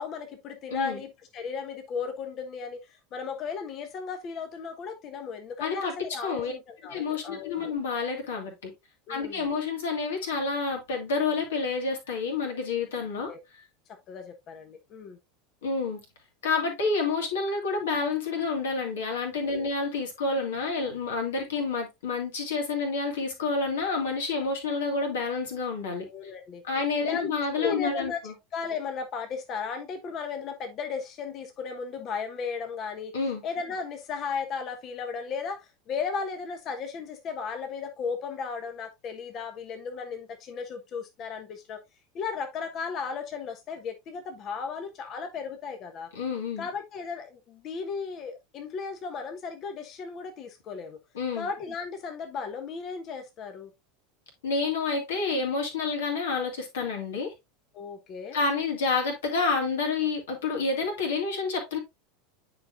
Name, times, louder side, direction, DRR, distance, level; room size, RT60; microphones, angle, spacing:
voice 1, 0.0-7.7 9.1-9.5 13.3-13.4 14.1-15.2 19.4-19.7 26.0-26.6 27.0-28.2 28.5-33.1 33.4-41.8 42.1-46.1 46.6-51.0 51.3-53.7 57.7-58.4, left 5 dB, 40° left, 1.2 m, -35 dB
voice 2, 0.7-1.0 5.6-5.9 6.2-6.5 6.9-8.7 9.1-13.3 15.6-16.0 16.4-26.0 26.6-28.3 33.1-33.4 46.1-46.7 51.1-51.5 54.4-57.3 58.3-61.8, left 4 dB, 70° left, 2.6 m, -29 dB
9.5 x 5.1 x 2.5 m
figure-of-eight pair, 80°, 0 cm